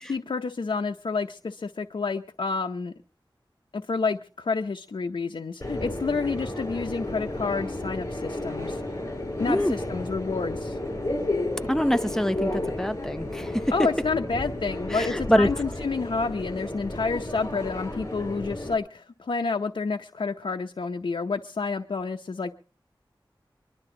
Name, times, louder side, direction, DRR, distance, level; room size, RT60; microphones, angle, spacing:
voice 1, 0.0-2.9 3.7-8.8 9.4-10.8 13.7-22.5, left 4 dB, 85° left, 0.7 m, -29 dB
Subway metro underground, 5.6-18.7, left 1 dB, 35° left, 5.8 m, -32 dB
voice 2, 11.7-13.7 14.9-15.5, equal, 5° left, 0.7 m, -24 dB
24.0 x 12.0 x 3.8 m
wide cardioid pair, 75°, 9 cm